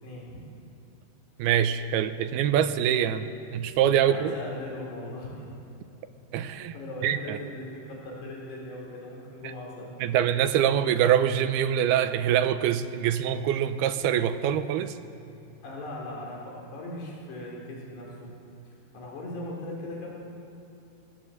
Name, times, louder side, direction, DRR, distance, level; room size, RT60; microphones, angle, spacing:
voice 1, 0.0-0.4 4.0-5.6 6.7-9.9 15.6-18.3 18.9-20.1, left 1 dB, 85° left, -3 dB, 6.2 m, -39 dB
voice 2, 1.4-4.4 6.3-6.7 7.0-7.4 10.0-14.9, right 10 dB, 80° right, 10 dB, 2.7 m, -24 dB
21.0 x 17.0 x 7.9 m, 2.8 s
omnidirectional pair, 4.6 m